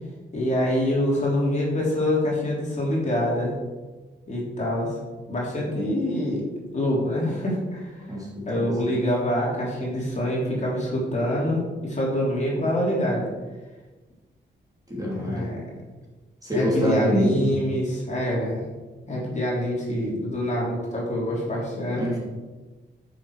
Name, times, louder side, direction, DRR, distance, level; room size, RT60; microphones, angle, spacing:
voice 1, 0.3-3.5 4.3-4.9 5.3-6.4 6.7-7.9 8.4-13.3 15.1-15.7 16.5-18.7 19.1-22.0, left 1 dB, 35° left, -4 dB, 3.3 m, -25 dB
voice 2, 14.9-15.5 16.4-17.6 22.0-22.2, equal, 20° right, -5 dB, 3.2 m, -25 dB
9.8 x 6.8 x 4.9 m, 1.2 s
wide cardioid pair, 105°, 20 cm